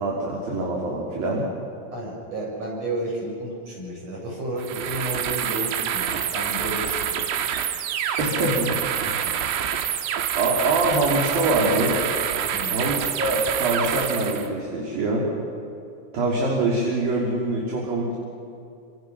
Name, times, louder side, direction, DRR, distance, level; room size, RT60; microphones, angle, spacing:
voice 1, 0.0-1.5 8.2-8.7 9.0-9.2 10.4-12.0 12.7-15.3 16.1-18.2, right 2 dB, 50° right, -3 dB, 4.3 m, -24 dB
voice 2, 1.9-7.3 12.5-12.8, right 1 dB, 30° right, -3 dB, 7.4 m, -32 dB
sound 1, 4.6-14.5, right 9 dB, 85° right, 4.0 m, -27 dB
28.5 x 26.5 x 6.1 m, 2.7 s
omnidirectional pair, 5.9 m